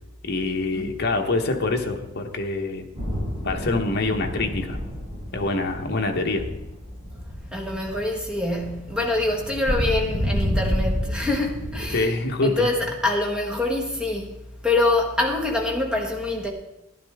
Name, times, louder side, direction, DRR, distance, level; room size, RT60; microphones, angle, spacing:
voice 1, 0.2-2.9 3.4-4.8 5.3-6.4 11.9-12.7, left 2 dB, 50° left, 1.0 m, -25 dB
sound 1, 2.9-12.0, equal, 30° right, 5.0 m, -29 dB
voice 2, 7.5-12.1 12.4-14.3 14.6-16.5, left 2 dB, 5° right, 1.5 m, -25 dB
11.5 x 11.0 x 3.5 m
head